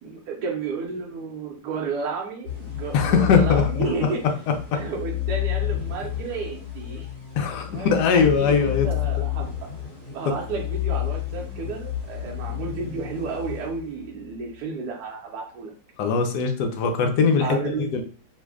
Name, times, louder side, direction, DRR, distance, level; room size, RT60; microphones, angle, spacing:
voice 1, 0.0-4.2 4.7-7.1 7.7-9.5 10.1-15.7 17.4-18.0, right 4 dB, 70° right, -2 dB, 1.1 m, -32 dB
sound 1, 2.4-14.3, left 14 dB, 45° left, 1.4 m, -30 dB
voice 2, 2.9-3.8 7.4-8.9 16.0-18.0, left 6 dB, 70° left, 4 dB, 1.0 m, -21 dB
3.2 x 2.1 x 3.5 m, 0.39 s
omnidirectional pair, 2.2 m